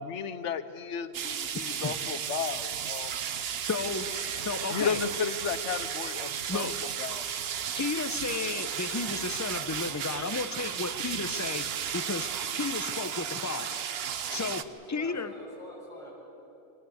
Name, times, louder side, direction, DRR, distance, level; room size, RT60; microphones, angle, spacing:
voice 1, 0.0-3.2 3.5-3.7 4.2-4.4 4.7-6.7 7.0-7.3, left 6 dB, 80° left, 12 dB, 1.1 m, -34 dB
sound 1, 1.1-14.6, right 8 dB, 60° right, 0.9 m, -34 dB
voice 2, 3.7-4.1 4.4-5.0 6.5-6.8 7.8-12.3 12.6-13.7 14.3-14.6 14.9-15.3, left 4 dB, 20° left, 10 dB, 0.6 m, -33 dB
voice 3, 14.1-14.4 14.7-16.1, equal, ahead, -7 dB, 6.4 m, -46 dB
24.0 x 18.5 x 7.9 m, 2.9 s
omnidirectional pair, 1.2 m